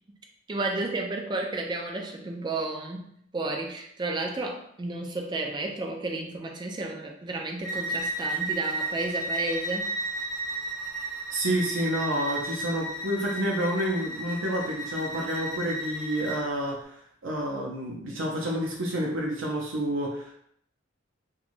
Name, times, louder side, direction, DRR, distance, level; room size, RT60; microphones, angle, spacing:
voice 1, 0.5-10.0, right 2 dB, 25° right, 2 dB, 0.3 m, -32 dB
Bowed string instrument, 7.6-16.4, right 2 dB, 20° left, 0.8 m, -33 dB
voice 2, 11.3-16.8 17.2-20.3, right 1 dB, 90° right, -2 dB, 0.5 m, -29 dB
2.9 x 2.3 x 2.5 m, 0.69 s
head